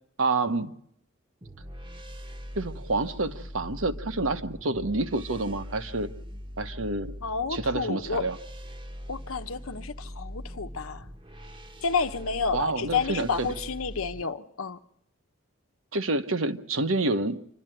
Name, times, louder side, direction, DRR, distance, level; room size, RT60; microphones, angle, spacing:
voice 1, 0.2-0.7 2.5-6.1 6.6-7.1 7.5-8.4 12.5-13.5 15.9-17.4, right 2 dB, 75° right, 1.1 m, -28 dB
sound 1, 1.4-14.2, equal, 25° right, 1.0 m, -41 dB
voice 2, 7.2-8.3 9.1-11.1 11.8-14.8, left 5 dB, 85° left, 1.0 m, -30 dB
27.0 x 12.5 x 9.0 m
head